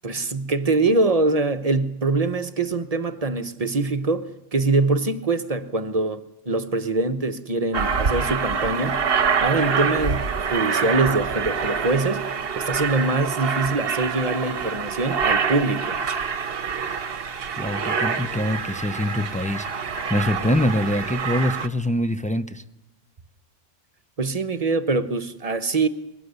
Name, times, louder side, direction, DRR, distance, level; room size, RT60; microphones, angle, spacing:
voice 1, 0.0-9.1 9.4-12.3 12.5-16.0 24.2-25.9, right 3 dB, 35° right, 1.0 m, -24 dB
Aircraft, 7.7-21.7, right 6 dB, 55° right, 1.2 m, -26 dB
voice 2, 17.6-22.6, left 1 dB, 10° left, 0.4 m, -24 dB
22.0 x 18.5 x 8.0 m
omnidirectional pair, 1.2 m